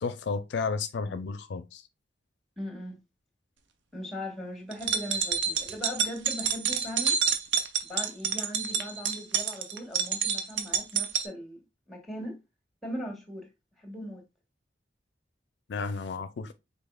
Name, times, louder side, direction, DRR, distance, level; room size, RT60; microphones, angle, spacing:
voice 1, 0.0-1.8 15.7-16.5, left 4 dB, 70° left, 0.4 m, -32 dB
voice 2, 2.6-3.0 3.9-7.2 7.9-11.6 11.9-12.4 12.8-13.5 13.8-14.2, equal, ahead, 1.5 m, -39 dB
sound 1, 4.7-11.3, right 7 dB, 90° right, 0.6 m, -28 dB
5.4 x 4.0 x 2.2 m
head